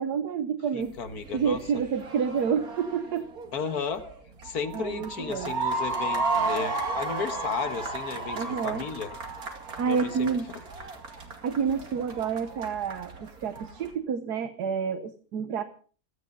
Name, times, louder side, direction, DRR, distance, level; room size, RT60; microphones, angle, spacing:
voice 1, 0.0-1.0 1.3-3.2 4.7-5.5 8.3-8.8 9.8-10.5 11.4-15.6, right 6 dB, 90° right, 10 dB, 1.5 m, -29 dB
voice 2, 0.7-1.6 3.5-4.1 4.4-9.1 9.9-10.3, left 6 dB, 70° left, 9 dB, 2.0 m, -34 dB
sound 1, 0.8-13.9, right 3 dB, 65° right, 2.9 m, -34 dB
17.0 x 13.5 x 5.4 m, 0.42 s
omnidirectional pair, 1.7 m